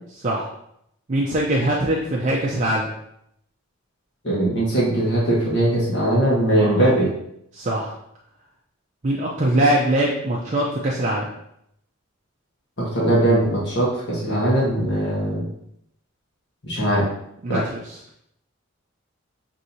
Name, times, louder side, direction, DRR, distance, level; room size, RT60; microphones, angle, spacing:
voice 1, 0.1-0.5 1.1-2.9 6.6-6.8 7.5-7.9 9.0-11.3 17.4-18.0, right 1 dB, 35° right, -3 dB, 0.5 m, -22 dB
voice 2, 4.2-7.1 12.8-15.5 16.6-17.1 17.5-17.6, right 1 dB, 55° left, -5 dB, 1.2 m, -20 dB
6.3 x 2.7 x 2.7 m, 0.76 s
head